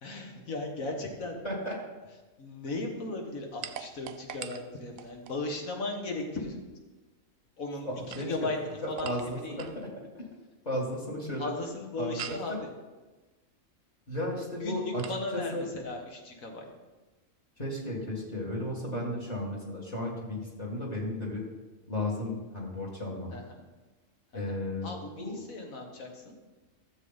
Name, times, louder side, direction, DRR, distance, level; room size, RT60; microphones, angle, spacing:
voice 1, 0.0-1.4 2.4-6.6 7.6-9.6 11.4-12.7 14.6-16.7 23.3-23.4 24.3-24.6 24.8-26.4, left 2 dB, 90° left, 2 dB, 1.9 m, -37 dB
voice 2, 1.4-1.8 7.8-8.3 8.8-9.9 10.1-10.2 10.6-11.5 12.0-12.6 14.1-15.6 17.6-21.4 21.9-23.4 24.3-25.4, left 1 dB, 30° left, -2 dB, 2.0 m, -34 dB
sound 1, 3.6-5.4 7.9-9.8 12.2-12.5 15.0-15.2, right 9 dB, 85° right, 1.0 m, -43 dB
13.0 x 7.3 x 4.0 m, 1.2 s
omnidirectional pair, 1.4 m